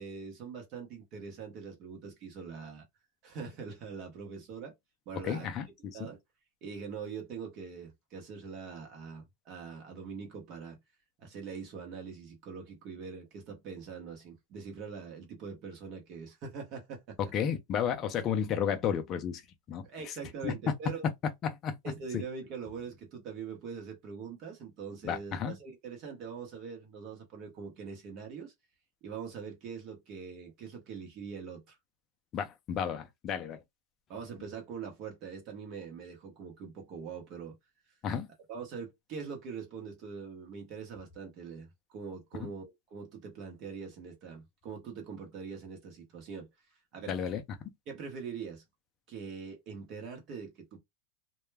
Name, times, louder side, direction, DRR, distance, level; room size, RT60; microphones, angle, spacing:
voice 1, 0.0-2.9 3.2-4.7 5.1-6.2 6.6-10.8 11.2-17.3 19.8-21.1 21.8-28.5 29.0-31.8 34.1-37.6 38.5-46.5 46.9-47.2 47.9-48.6 49.1-50.8, right 6 dB, 35° right, 0.8 m, -43 dB
voice 2, 5.2-6.1 17.3-19.4 19.7-20.1 20.4-20.5 21.4-21.8 22.1-22.2 25.0-25.6 32.3-33.6 38.0-38.3 42.4-42.5 47.1-47.4, left 8 dB, 25° left, 0.4 m, -33 dB
2.2 x 2.0 x 3.2 m
supercardioid pair, 165°, 0 cm